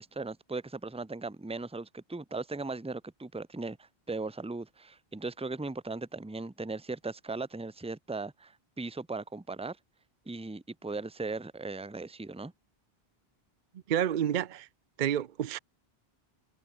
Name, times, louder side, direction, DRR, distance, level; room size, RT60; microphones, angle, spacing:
voice 1, 0.0-9.8 10.3-12.5, right 3 dB, 5° right, 0.8 m, -38 dB
voice 2, 13.9-14.7 15.0-15.6, right 10 dB, 55° right, 0.7 m, -29 dB
omnidirectional pair, 1.0 m